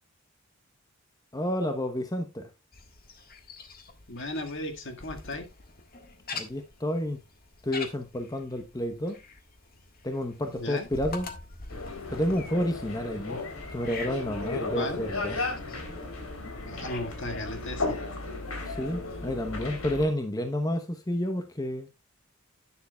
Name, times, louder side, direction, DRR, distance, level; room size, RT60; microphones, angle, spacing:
voice 1, 1.3-2.5 6.3-7.2 7.6-9.2 10.0-11.3 12.1-13.4 13.7-15.4 18.7-21.9, left 1 dB, 15° left, 0.9 m, -30 dB
sound 1, 2.7-20.1, left 3 dB, 45° left, 1.6 m, -45 dB
voice 2, 4.1-5.5 10.6-10.9 14.7-15.0 16.7-18.0, left 1 dB, 60° left, 1.8 m, -35 dB
sound 2, 11.7-20.1, left 3 dB, 85° left, 3.5 m, -35 dB
11.0 x 9.7 x 2.3 m
head